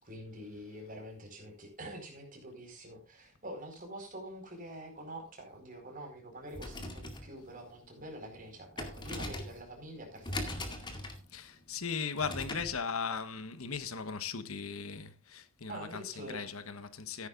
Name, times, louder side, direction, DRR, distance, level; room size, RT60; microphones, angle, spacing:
voice 1, 0.0-11.0 15.7-16.5, right 1 dB, 40° right, 4.8 m, -46 dB
sound 1, 6.4-12.8, left 1 dB, 20° left, 2.1 m, -42 dB
voice 2, 11.3-17.3, left 5 dB, 80° left, 1.2 m, -38 dB
15.0 x 10.5 x 2.5 m
head